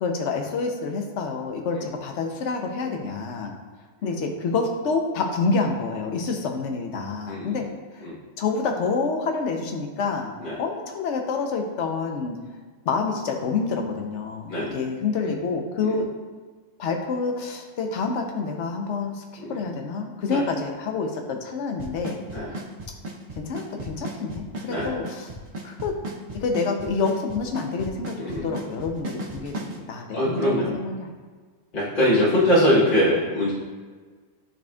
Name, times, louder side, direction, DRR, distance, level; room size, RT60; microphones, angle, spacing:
voice 1, 0.0-3.5 4.0-7.6 8.4-12.4 12.9-16.1 16.8-19.2 19.5-22.2 23.4-25.3 25.6-25.9 26.3-31.1 32.0-32.1, left 4 dB, 65° left, 3 dB, 1.0 m, -28 dB
voice 2, 7.3-7.7 8.0-8.2 10.4-10.6 14.5-14.8 15.2-15.3 15.8-16.0 19.4-19.6 20.3-20.4 22.3-22.5 24.7-25.0 28.2-28.5 30.1-30.7 31.7-33.5, equal, 40° left, -9 dB, 1.3 m, -23 dB
Drum kit / Snare drum / Bass drum, 21.8-29.8, right 2 dB, 55° right, 1.1 m, -34 dB
11.0 x 4.3 x 2.3 m, 1.5 s
omnidirectional pair, 1.4 m